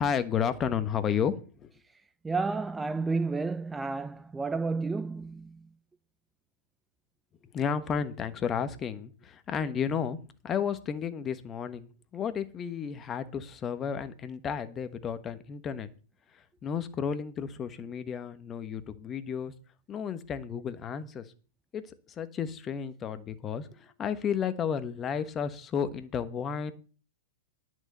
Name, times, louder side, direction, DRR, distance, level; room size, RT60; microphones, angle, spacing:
voice 1, 0.0-1.7 7.5-15.9 16.3-19.5 19.9-21.3 21.7-21.8 22.1-26.7, left 7 dB, 25° left, 1.3 m, -32 dB
voice 2, 2.2-5.7, right 4 dB, 10° right, 0.5 m, -31 dB
10.5 x 6.4 x 7.9 m
hypercardioid pair, 110°, 0 cm